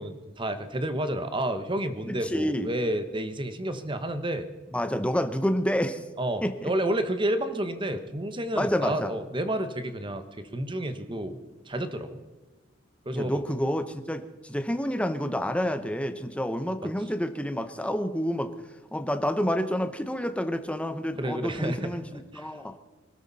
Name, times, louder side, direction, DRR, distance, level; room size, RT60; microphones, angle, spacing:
voice 1, 0.0-4.5 6.2-10.2 10.5-11.4 11.7-12.2 13.0-13.4 21.2-22.0 22.3-22.5, right 1 dB, 25° right, 9 dB, 1.2 m, -30 dB
voice 2, 2.1-2.7 4.7-6.0 6.4-6.7 8.6-9.1 13.1-18.5 18.9-22.8, equal, 5° left, 9 dB, 0.9 m, -29 dB
25.5 x 13.0 x 4.2 m, 1.2 s
head